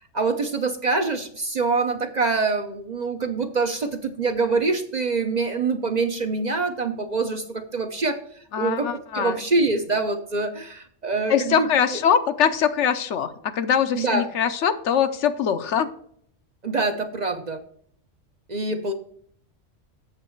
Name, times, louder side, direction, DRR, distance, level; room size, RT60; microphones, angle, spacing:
voice 1, 0.1-8.2 8.6-8.9 9.1-12.0 13.9-14.3 16.6-17.6 18.5-18.9, right 3 dB, 45° right, 6 dB, 0.7 m, -25 dB
voice 2, 8.5-9.4 11.3-15.9, left 8 dB, 70° left, 11 dB, 1.0 m, -22 dB
7.9 x 7.1 x 4.4 m, 0.62 s
omnidirectional pair, 1.3 m